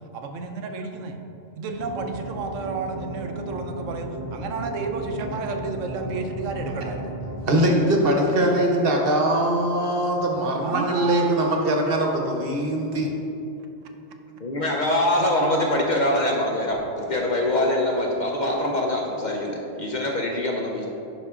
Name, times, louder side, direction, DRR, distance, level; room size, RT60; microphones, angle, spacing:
voice 1, 0.1-1.2 1.6-7.2 8.0-8.1 10.6-11.4, right 4 dB, 80° right, 4 dB, 1.0 m, -31 dB
sound 1, 1.7-7.4, right 1 dB, 70° left, 1.8 m, -34 dB
voice 2, 7.4-13.1, right 1 dB, 50° right, 1 dB, 1.1 m, -22 dB
voice 3, 14.4-20.9, left 1 dB, 45° left, -1 dB, 0.6 m, -24 dB
11.0 x 4.0 x 3.6 m, 2.9 s
omnidirectional pair, 1.3 m